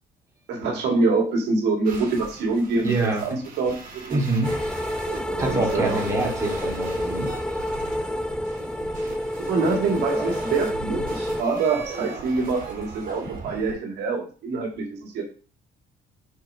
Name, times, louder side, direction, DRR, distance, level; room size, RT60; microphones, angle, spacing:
voice 1, 0.5-4.2 5.2-6.1 9.4-15.2, right 3 dB, 75° right, 1 dB, 2.0 m, -25 dB
sound 1, 1.8-13.7, right 4 dB, 55° right, 2.4 m, -39 dB
voice 2, 2.8-3.2 4.1-4.5 5.4-7.3, right 2 dB, 15° right, -2 dB, 2.5 m, -25 dB
sound 2, 4.4-11.4, left 1 dB, 5° left, 0.4 m, -29 dB
4.9 x 4.6 x 5.4 m, 0.37 s
cardioid pair, 110°, 17 cm